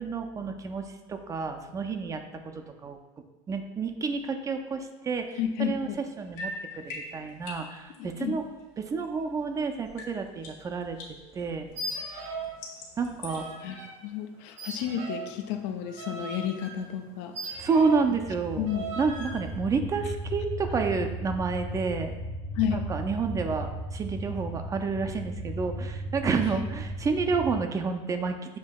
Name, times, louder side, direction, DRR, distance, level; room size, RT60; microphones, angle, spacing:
voice 1, 0.0-3.0 3.5-8.4 8.8-11.0 11.3-11.7 13.0-13.5 17.6-18.7 19.0-22.1 22.7-28.4, right 4 dB, 20° right, 6 dB, 0.3 m, -30 dB
sound 1, 5.1-9.5 9.8-13.5, left 2 dB, 60° left, 1.3 m, -44 dB
voice 2, 5.4-6.0 8.0-8.4 13.6-17.7 18.6-18.9 22.6-22.9 26.4-26.6, left 9 dB, 75° left, 7 dB, 0.5 m, -32 dB
sound 2, 11.7-12.6 12.8-13.9 14.6-18.1 18.7-19.4, right 3 dB, 85° right, 1.3 m, -38 dB
sound 3, 17.6-27.6, right 1 dB, 35° left, 0.9 m, -36 dB
7.3 x 2.6 x 2.3 m, 1.1 s
supercardioid pair, 125°, 15 cm